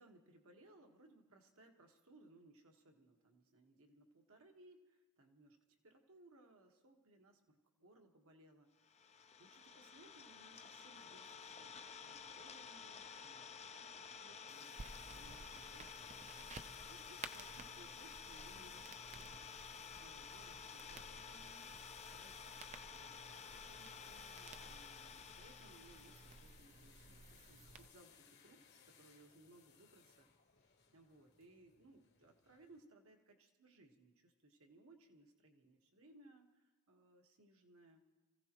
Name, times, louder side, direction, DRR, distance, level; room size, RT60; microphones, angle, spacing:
voice 1, 0.0-8.9 9.4-19.4 19.8-21.6 22.1-30.3 30.9-38.0, right 2 dB, 65° right, 3 dB, 1.5 m, -65 dB
Idling, 8.8-26.6, left 6 dB, 30° left, 0.6 m, -53 dB
sound 1, 14.5-32.8, left 7 dB, 50° left, 1.4 m, -64 dB
sound 2, 14.8-27.9, right 3 dB, 30° right, 0.6 m, -56 dB
27.0 x 15.5 x 3.0 m, 1.2 s
head